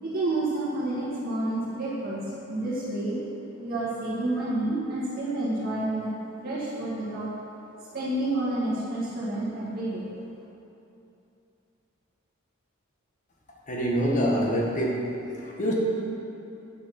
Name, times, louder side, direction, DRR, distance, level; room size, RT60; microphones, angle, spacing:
voice 1, 0.0-2.2 2.5-3.2 3.6-6.1 6.4-7.3 7.9-10.1, right 2 dB, 45° right, -9 dB, 1.8 m, -29 dB
voice 2, 13.7-15.0 15.4-15.7, equal, 40° left, -2 dB, 1.4 m, -25 dB
9.2 x 6.3 x 5.9 m, 2.8 s
head